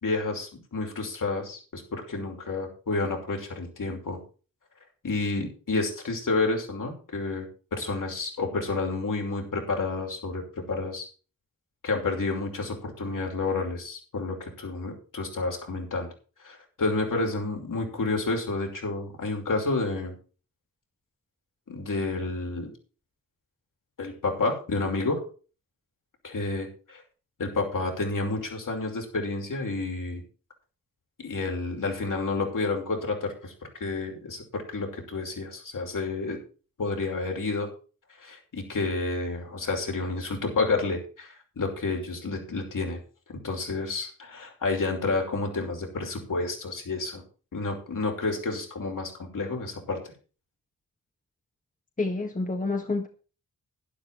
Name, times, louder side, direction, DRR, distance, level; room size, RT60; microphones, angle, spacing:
voice 1, 0.0-4.2 5.0-11.1 11.8-16.1 16.4-20.1 21.7-22.7 24.0-25.2 26.2-27.0 27.4-30.2 31.2-33.5 33.8-36.4 36.8-37.7 38.2-43.0 43.4-47.2 47.5-50.0, left 3 dB, 65° left, 5.8 m, -30 dB
voice 2, 52.0-53.1, left 3 dB, 20° left, 1.7 m, -28 dB
12.0 x 11.5 x 4.5 m
wide cardioid pair, 95°, 35 cm